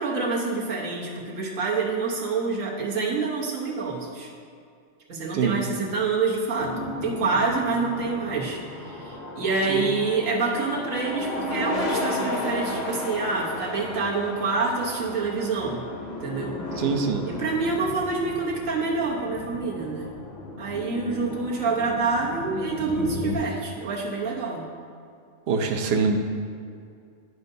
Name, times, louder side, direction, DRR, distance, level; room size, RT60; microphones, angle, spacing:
voice 1, 0.0-4.3 5.1-15.8 16.2-16.6 17.3-20.1 20.6-24.7, right 4 dB, 80° right, -3 dB, 1.5 m, -27 dB
sound 1, 6.5-23.4, left 2 dB, 40° left, 0.7 m, -34 dB
voice 2, 16.8-17.2 25.5-26.2, right 5 dB, 60° right, 5 dB, 0.8 m, -24 dB
11.0 x 5.4 x 2.7 m, 2.3 s
omnidirectional pair, 1.4 m